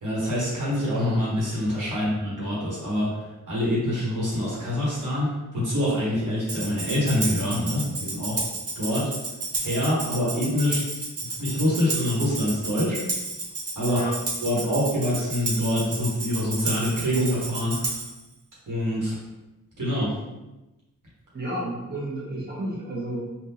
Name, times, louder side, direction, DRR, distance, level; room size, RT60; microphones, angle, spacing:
voice 1, 0.0-3.2 3.5-8.4 8.7-9.1 9.6-10.8 11.3-13.0 13.7-14.0 14.4-18.0 18.7-19.2 19.8-20.1, left 1 dB, 75° right, -7 dB, 1.4 m, -25 dB
Tambourine, 6.5-18.2, right 3 dB, 50° right, 0.7 m, -32 dB
voice 2, 13.8-14.2 21.3-23.2, right 1 dB, 30° right, -6 dB, 1.2 m, -31 dB
3.6 x 2.6 x 2.8 m, 1.0 s
cardioid pair, 60°, 32 cm